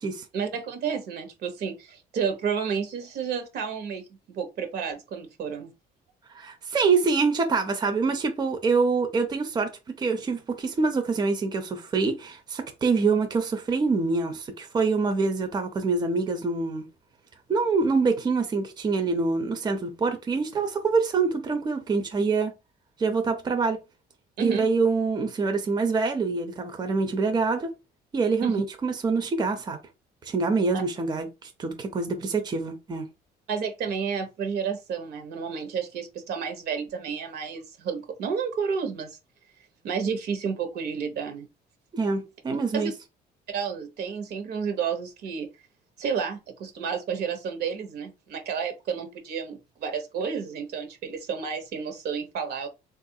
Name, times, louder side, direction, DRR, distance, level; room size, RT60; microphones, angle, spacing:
voice 1, 0.3-5.7 24.4-24.7 28.4-28.6 30.7-30.8 33.5-39.2 39.8-41.5 42.7-42.9 43.5-45.5 46.0-52.7, right 6 dB, 70° right, 0.9 m, -31 dB
voice 2, 6.3-9.7 10.0-16.9 17.5-22.5 23.0-23.8 24.4-27.7 28.1-29.8 30.2-33.1 41.9-42.9, right 4 dB, 25° right, 0.6 m, -25 dB
3.5 x 2.4 x 2.7 m
cardioid pair, 110°, 17 cm